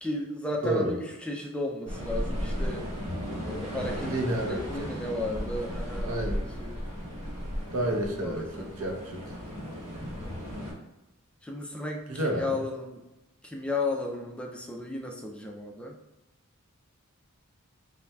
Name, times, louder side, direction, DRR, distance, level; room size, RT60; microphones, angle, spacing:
voice 1, 0.0-2.9 3.5-4.1 4.4-6.8 8.1-8.8 10.1-10.3 11.4-13.0 13.4-16.0, left 2 dB, 5° left, 1 dB, 0.4 m, -34 dB
voice 2, 0.6-0.9 4.0-4.9 6.0-6.4 7.7-9.4 12.1-12.6, right 1 dB, 75° right, 1 dB, 0.8 m, -30 dB
sound 1, 1.9-10.7, equal, 90° right, 1.3 m, -35 dB
5.5 x 2.2 x 2.3 m, 0.96 s
head